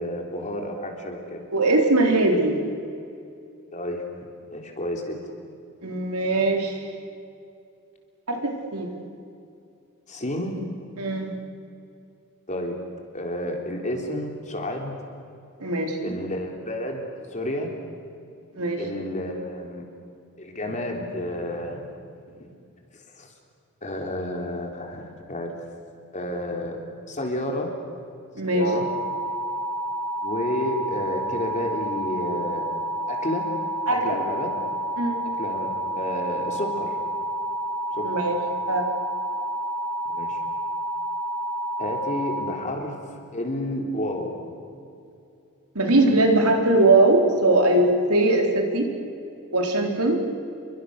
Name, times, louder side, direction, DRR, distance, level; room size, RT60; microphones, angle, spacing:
voice 1, 0.0-1.4 3.7-4.1 4.5-5.3 10.1-10.6 12.5-12.8 13.1-14.9 16.0-17.8 18.8-19.9 20.4-21.8 22.4-22.5 23.2-23.3 23.8-25.6 26.1-26.8 27.1-27.7 28.4-28.9 30.2-32.7 33.1-33.5 34.0-34.5 35.3-37.0 37.9-38.2 40.1-40.4 41.8-44.5, left 1 dB, 35° left, 2 dB, 3.6 m, -31 dB
voice 2, 1.5-2.6 5.8-6.8 8.3-8.9 11.0-11.3 15.6-16.1 18.5-19.0 28.4-28.7 33.9-34.0 35.0-35.2 38.0-38.4 38.7-38.9 45.8-48.9 49.5-50.2, right 2 dB, 80° right, 2 dB, 3.8 m, -21 dB
sound 1, 28.6-42.4, right 1 dB, 60° left, 3.7 m, -29 dB
29.0 x 23.5 x 6.6 m, 2.6 s
head